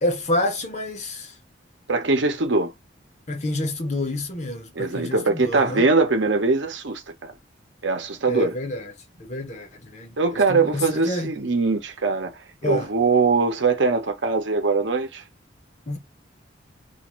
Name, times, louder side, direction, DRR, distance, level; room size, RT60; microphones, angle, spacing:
voice 1, 0.0-1.3 3.3-5.9 8.3-8.9 9.2-11.3 12.6-12.9 15.9-16.0, left 1 dB, 35° left, 0.8 m, -28 dB
voice 2, 1.9-2.7 4.8-7.3 7.8-8.5 10.2-12.3 12.6-15.2, right 3 dB, 75° right, 0.8 m, -22 dB
2.5 x 2.5 x 3.0 m
head